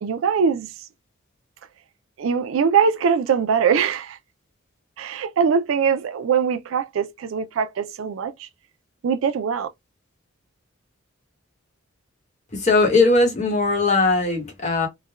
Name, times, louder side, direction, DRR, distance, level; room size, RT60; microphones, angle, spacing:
voice 1, 0.0-0.7 2.2-4.2 5.0-8.5 9.0-9.7, right 6 dB, 75° right, 0.3 m, -22 dB
voice 2, 12.5-14.9, left 3 dB, 35° left, 1.0 m, -19 dB
3.2 x 2.1 x 2.2 m
head